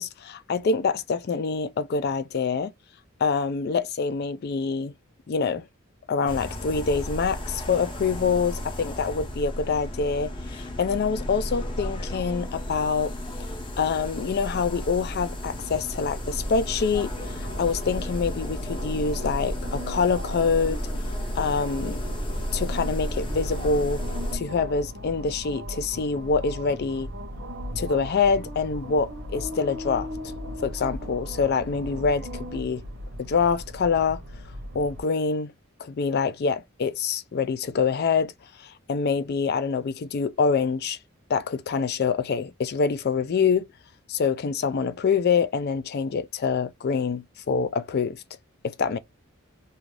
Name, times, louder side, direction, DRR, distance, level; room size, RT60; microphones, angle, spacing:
voice 1, 0.0-2.7 3.2-4.9 5.3-5.6 6.1-13.1 13.4-13.5 13.8-20.8 21.4-22.0 22.5-24.0 24.3-27.1 27.8-30.1 30.6-32.8 33.2-34.2 34.7-35.5 35.8-38.3 38.6-41.0 41.3-43.7 44.1-48.2 48.6-49.0, left 5 dB, 50° left, 0.4 m, -25 dB
sound 1, 6.2-24.4, equal, 25° left, 0.7 m, -33 dB
sound 2, 15.5-35.0, equal, 60° right, 0.9 m, -37 dB
2.5 x 2.4 x 3.1 m
head